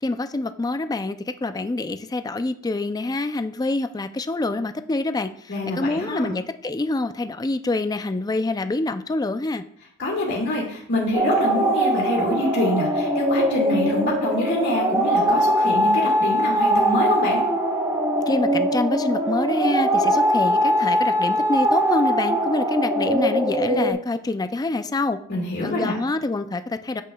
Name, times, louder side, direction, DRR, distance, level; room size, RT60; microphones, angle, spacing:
voice 1, 0.0-9.6 18.3-25.2 25.6-27.0, left 2 dB, 20° left, 10 dB, 0.4 m, -26 dB
voice 2, 5.5-6.3 10.0-17.4 25.3-25.9, left 1 dB, 55° left, -3 dB, 1.9 m, -25 dB
sound 1, 11.1-23.9, right 1 dB, 20° right, 1.1 m, -21 dB
9.2 x 7.5 x 2.3 m, 0.63 s
head